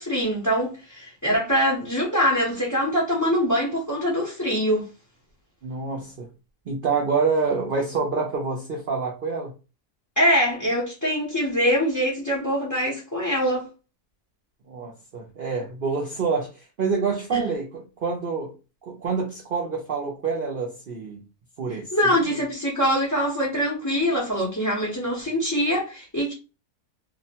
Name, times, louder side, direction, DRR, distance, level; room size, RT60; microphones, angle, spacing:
voice 1, 0.0-4.9 10.2-13.7 17.3-17.4 21.9-26.3, equal, 20° left, 0.5 m, -23 dB
voice 2, 5.6-6.3 6.7-9.5 14.7-18.5 18.8-21.2 21.6-22.2, right 5 dB, 65° right, 0.5 m, -27 dB
2.7 x 2.1 x 2.7 m
omnidirectional pair, 1.7 m